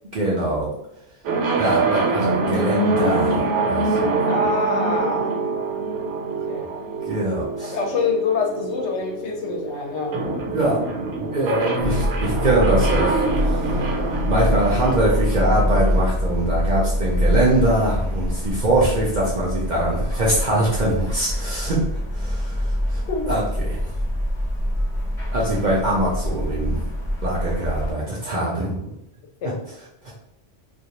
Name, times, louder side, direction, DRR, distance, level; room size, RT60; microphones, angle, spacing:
voice 1, 0.1-0.7 1.5-4.1 7.1-7.8 10.5-10.8 11.3-13.9 14.2-21.8 22.1-23.0 23.3-23.8 25.3-26.9 27.2-28.9 30.0-30.1, right 1 dB, 55° right, -4 dB, 0.5 m, -23 dB
sound 1, 1.2-17.0, right 3 dB, 75° right, 0.9 m, -25 dB
voice 2, 4.3-5.5 6.5-6.7 7.6-10.2 23.1-23.3 29.4-29.6, left 4 dB, 75° left, 1 dB, 0.9 m, -26 dB
sound 2, 11.8-27.9, equal, 25° left, 0.9 m, -25 dB
2.3 x 2.1 x 2.8 m, 0.78 s
omnidirectional pair, 1.2 m